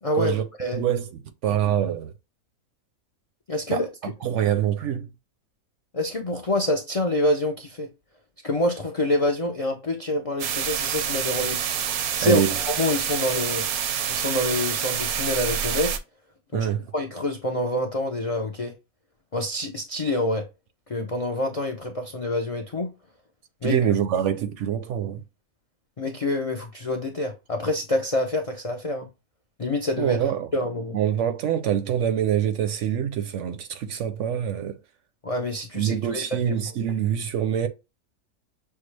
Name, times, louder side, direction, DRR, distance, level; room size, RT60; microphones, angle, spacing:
voice 1, 0.0-0.9 3.5-4.1 5.9-7.9 8.4-13.6 14.1-16.0 16.5-18.7 19.3-20.4 20.9-22.9 23.6-23.8 26.0-29.1 29.6-31.0 35.2-36.5, left 1 dB, 55° left, 0.4 m, -27 dB
voice 2, 0.7-1.0 1.4-2.1 3.7-3.8 4.2-5.1 12.2-12.6 16.5-16.8 23.6-25.2 30.0-30.5 30.9-34.8 35.7-37.7, right 9 dB, 65° right, 0.8 m, -25 dB
sound 1, 10.4-16.0, right 8 dB, 90° right, 1.1 m, -27 dB
6.4 x 2.3 x 3.1 m
omnidirectional pair, 1.5 m